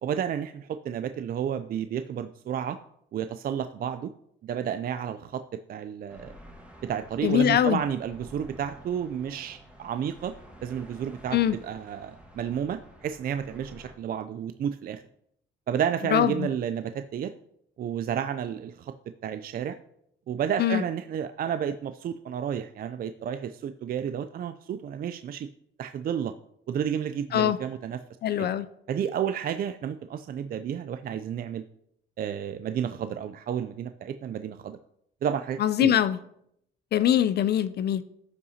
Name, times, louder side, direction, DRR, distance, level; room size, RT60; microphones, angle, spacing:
voice 1, 0.0-2.8 3.1-4.1 4.4-5.4 5.7-6.3 6.8-10.3 10.6-15.0 15.7-17.3 17.8-18.9 19.2-19.8 20.3-25.5 25.8-26.3 26.7-28.0 28.4-28.5 28.9-31.6 32.2-34.8 35.2-35.9, right 8 dB, 50° right, 10 dB, 0.4 m, -31 dB
sound 1, 6.1-14.0, equal, 5° right, 1.7 m, -50 dB
voice 2, 7.2-7.8 11.3-11.5 16.1-16.5 20.6-20.8 27.3-27.6 28.2-28.7 35.6-36.2 36.9-38.0, left 10 dB, 55° left, 14 dB, 0.4 m, -22 dB
13.5 x 5.6 x 2.8 m, 0.74 s
cardioid pair, 90°, 20 cm